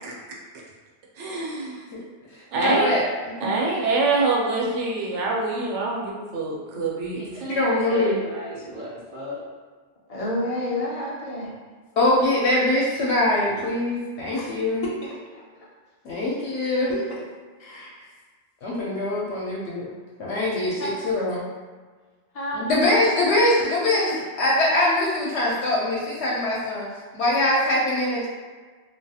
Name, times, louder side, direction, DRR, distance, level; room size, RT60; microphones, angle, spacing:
voice 1, 1.2-1.8 2.5-2.9 3.4-7.2, right 3 dB, 90° right, -2 dB, 0.9 m, -25 dB
voice 2, 2.6-3.3 7.5-8.2 12.0-14.8 16.0-17.0 18.6-19.9 20.2-21.5 22.5-26.9 27.1-28.3, left 1 dB, 75° left, -5 dB, 0.8 m, -23 dB
voice 3, 7.1-9.4, equal, 55° right, -6 dB, 0.6 m, -34 dB
voice 4, 10.1-11.6 14.3-14.5 14.8-15.1 16.9-17.0 17.6-18.1 20.8-21.0 22.3-23.1, left 1 dB, 50° left, -5 dB, 0.4 m, -30 dB
2.4 x 2.3 x 2.7 m, 1.4 s
omnidirectional pair, 1.2 m